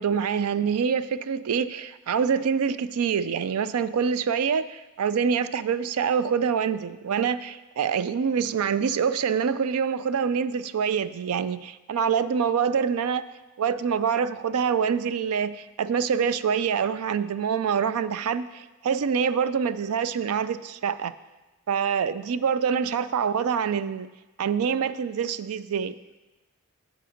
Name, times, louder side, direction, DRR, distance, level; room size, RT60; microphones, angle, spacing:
voice 1, 0.0-13.2 13.6-21.1 21.7-24.1 24.4-25.9, right 7 dB, 80° right, 15 dB, 0.4 m, -25 dB
7.6 x 7.5 x 5.1 m, 1.1 s
head